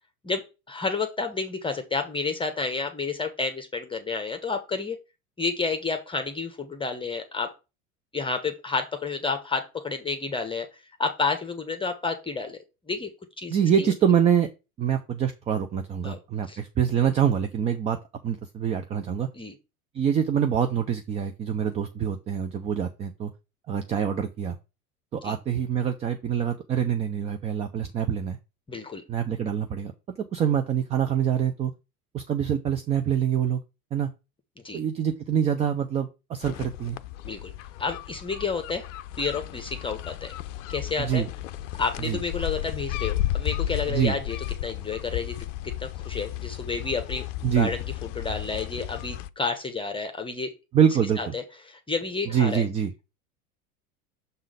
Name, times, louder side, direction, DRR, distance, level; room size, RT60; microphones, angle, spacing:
voice 1, 0.2-5.0 5.4-7.5 8.1-10.7 11.0-12.6 12.9-13.1 13.4-13.9 16.0-16.2 16.5-16.6 19.3-19.5 25.2-25.4 28.7-29.0 34.6-34.8 37.2-37.5 37.8-38.8 39.2-40.3 40.7-41.2 41.8-44.4 44.6-45.3 45.8-47.2 47.6-47.8 48.1-50.5 51.2-52.6, left 4 dB, 10° left, 6 dB, 0.9 m, -30 dB
voice 2, 13.5-14.5 14.8-18.0 18.2-19.3 19.9-23.3 23.7-24.6 25.1-28.4 29.1-29.9 30.3-31.7 32.1-33.6 33.9-34.1 34.7-37.0 41.0-41.3 42.0-42.2 43.9-44.2 47.4-47.7 50.7-51.3 52.3-52.9, right 8 dB, 15° right, 7 dB, 0.4 m, -25 dB
sound 1, 36.4-49.3, left 13 dB, 55° left, 0.6 m, -33 dB
6.7 x 3.7 x 4.8 m, 0.27 s
figure-of-eight pair, 80°, 45 cm